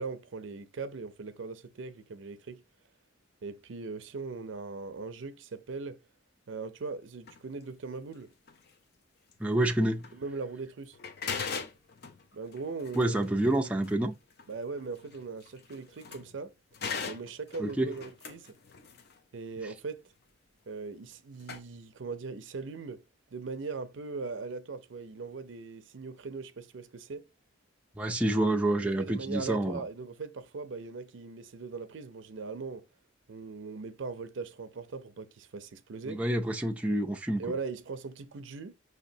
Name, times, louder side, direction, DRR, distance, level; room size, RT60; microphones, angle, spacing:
voice 1, 0.0-2.6 3.4-6.0 6.5-8.3 10.1-11.0 12.3-13.3 14.5-16.5 17.0-18.6 19.3-20.1 20.7-23.0 23.3-27.3 28.8-32.8 33.3-36.2 37.4-38.7, right 4 dB, 70° right, 0.5 m, -40 dB
sound 1, 7.2-7.4 8.5-8.7 9.3-9.4 10.0-10.2 10.6-10.7 10.9-16.4 16.7-19.2 21.1-21.2 21.4-21.6, left 5 dB, 55° left, 0.6 m, -41 dB
voice 2, 9.4-10.0 12.9-14.1 17.6-17.9 28.0-29.8 36.1-37.4, right 1 dB, 5° right, 0.4 m, -28 dB
5.8 x 2.9 x 2.7 m
head